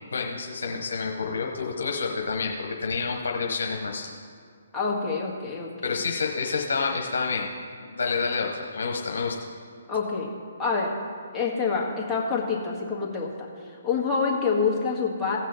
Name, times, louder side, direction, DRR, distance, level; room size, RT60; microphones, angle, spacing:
voice 1, 0.1-4.1 5.8-7.5 7.8-9.4, left 4 dB, 75° left, 1 dB, 1.1 m, -28 dB
voice 2, 4.7-6.0 9.9-10.3 10.6-10.9 11.3-15.4, left 5 dB, 10° left, -5 dB, 1.7 m, -27 dB
16.5 x 6.2 x 4.1 m, 2.1 s
hypercardioid pair, 145°, 0 cm